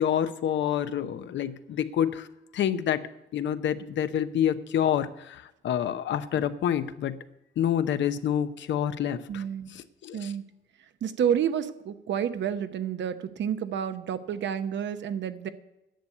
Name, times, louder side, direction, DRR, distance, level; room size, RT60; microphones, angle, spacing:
voice 1, 0.0-2.3 2.5-7.2 7.6-9.4 9.7-10.3, left 9 dB, 65° left, 11 dB, 0.8 m, -28 dB
voice 2, 9.3-9.7 10.1-10.4 11.0-15.5, right 8 dB, 65° right, 11 dB, 0.9 m, -29 dB
10.5 x 7.0 x 9.4 m, 0.92 s
cardioid pair, 90°, 20 cm